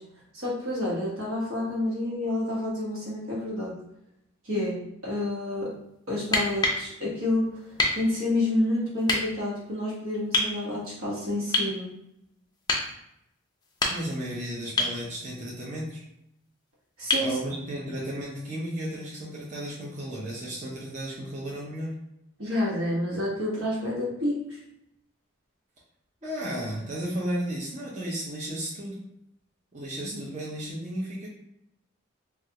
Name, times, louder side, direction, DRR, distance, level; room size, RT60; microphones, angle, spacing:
voice 1, 0.3-3.7 4.4-5.7 6.1-7.5 7.9-11.9 17.0-17.4 22.4-24.4 30.1-30.2, left 1 dB, 80° right, -4 dB, 1.2 m, -29 dB
sound 1, 6.2-6.8 7.8-8.0 9.0-9.2 10.3-10.5 11.5-11.8 12.7-12.9 13.6-14.2 14.8-15.0 17.1-17.3 19.2-19.3, left 2 dB, 20° left, 0.4 m, -25 dB
voice 2, 13.9-16.0 17.2-22.0 26.2-29.0 29.7-31.3, equal, 35° right, -6 dB, 0.7 m, -34 dB
3.3 x 2.4 x 2.8 m, 0.81 s
head